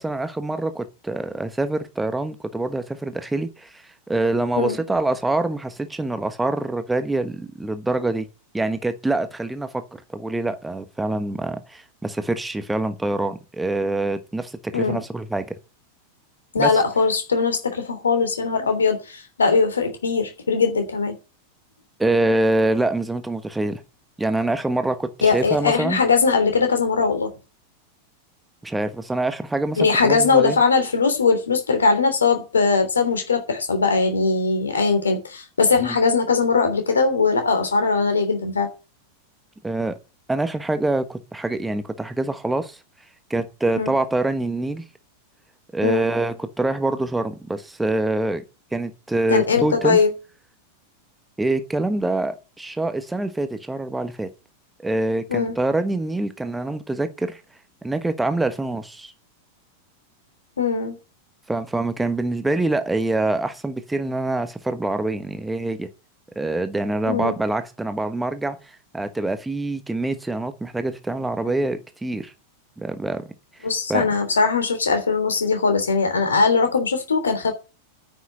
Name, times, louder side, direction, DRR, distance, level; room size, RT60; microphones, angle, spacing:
voice 1, 0.0-8.3 8.5-9.8 10.1-15.5 16.6-16.8 22.0-23.8 24.2-26.0 28.6-30.6 35.8-35.9 39.6-40.0 40.3-42.8 43.3-44.8 45.7-48.4 48.7-50.0 51.4-54.3 54.8-57.4 57.8-59.1 61.5-65.9 66.3-72.3 72.8-73.3 73.9-74.1, right 2 dB, 5° right, 1.2 m, -25 dB
voice 2, 14.7-15.0 16.5-21.2 25.2-27.3 29.8-38.7 43.8-43.9 45.8-46.0 49.3-50.1 55.3-55.5 60.6-61.0 67.1-67.4 73.6-77.5, left 4 dB, 70° left, 3.2 m, -20 dB
9.5 x 6.3 x 8.2 m
figure-of-eight pair, 90°, 0 cm